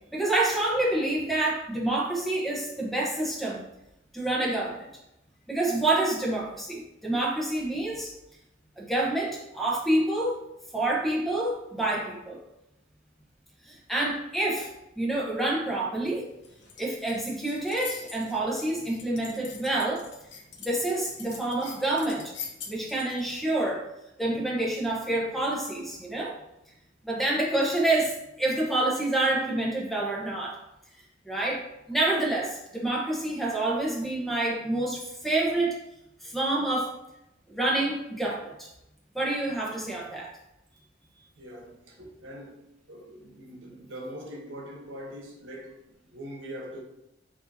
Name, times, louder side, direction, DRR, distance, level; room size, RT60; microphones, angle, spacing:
voice 1, 0.1-3.6 4.1-4.8 5.5-8.1 8.8-10.4 10.7-12.4 13.7-14.7 15.0-16.3 16.8-20.1 20.6-22.3 22.7-23.9 24.2-26.4 27.0-30.6 31.2-35.8 36.2-36.9 37.5-38.7 39.1-40.3, right 2 dB, ahead, 0.9 m, -27 dB
sound 1, 16.0-23.4, left 6 dB, 70° left, 0.8 m, -45 dB
voice 2, 41.4-46.8, equal, 90° right, 1.0 m, -42 dB
7.1 x 2.7 x 2.7 m
head